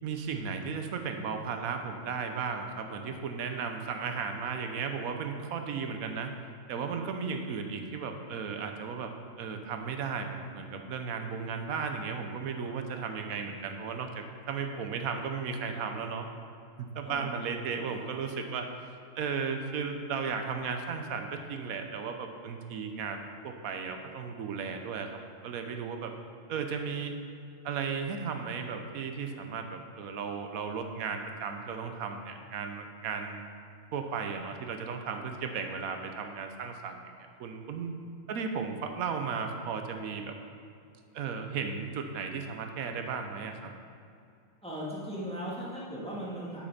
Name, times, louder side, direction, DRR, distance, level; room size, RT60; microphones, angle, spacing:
voice 1, 0.0-6.3 6.7-9.1 9.4-16.3 16.9-18.7 19.2-26.1 26.5-27.1 27.6-33.4 33.9-37.9 38.3-40.3 41.1-43.7, right 5 dB, 90° right, 5 dB, 1.2 m, -35 dB
voice 2, 17.0-18.2 44.6-46.7, equal, 5° left, -7 dB, 2.0 m, -39 dB
8.1 x 6.1 x 5.8 m, 2.5 s
omnidirectional pair, 1.4 m